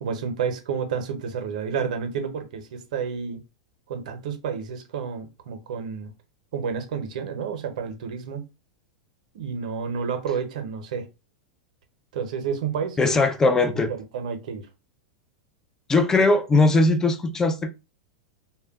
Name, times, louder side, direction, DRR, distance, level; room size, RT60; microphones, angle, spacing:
voice 1, 0.0-3.4 3.9-6.1 6.5-8.5 9.3-11.0 12.1-13.2 13.7-14.6, right 6 dB, 75° right, 0.8 m, -30 dB
voice 2, 13.0-13.9 15.9-17.7, left 3 dB, 15° left, 0.4 m, -20 dB
2.2 x 2.1 x 3.6 m
hypercardioid pair, 125°, 4 cm